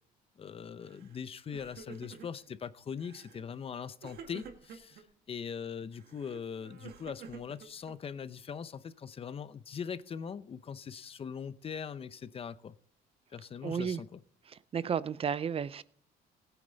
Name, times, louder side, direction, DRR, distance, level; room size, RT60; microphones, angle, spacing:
voice 1, 0.4-5.0 5.3-12.8 13.3-14.1, left 7 dB, 35° left, 0.7 m, -41 dB
Crying sobbing, 0.9-1.2 1.4-2.5 3.0-3.4 4.0-5.0 5.9-8.2, right 6 dB, 70° right, 2.0 m, -50 dB
voice 2, 13.6-14.0 14.5-15.8, right 7 dB, 35° right, 0.6 m, -33 dB
17.0 x 9.2 x 4.0 m
cardioid pair, 110°, 17 cm